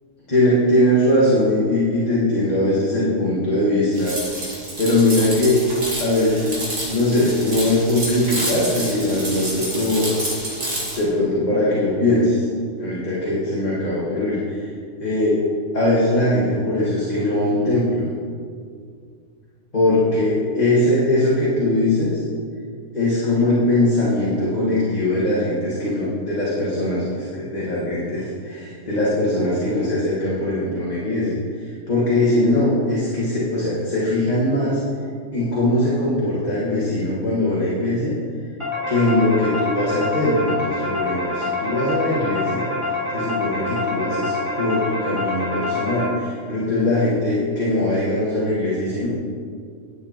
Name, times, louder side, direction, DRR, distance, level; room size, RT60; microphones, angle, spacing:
voice 1, 0.3-4.1 4.8-5.6 6.0-10.1 11.0-12.5 12.8-14.7 15.0-15.4 15.7-18.1 19.7-22.2 22.9-31.4 31.9-34.8 35.3-38.1 38.9-42.7 43.1-49.1, left 1 dB, 30° left, -8 dB, 1.8 m, -21 dB
sound 1, 3.9-11.0, right 1 dB, 75° right, 2.7 m, -29 dB
sound 2, 38.6-46.5, left 2 dB, 20° right, 3.0 m, -26 dB
10.5 x 8.3 x 4.4 m, 2.2 s
omnidirectional pair, 1.6 m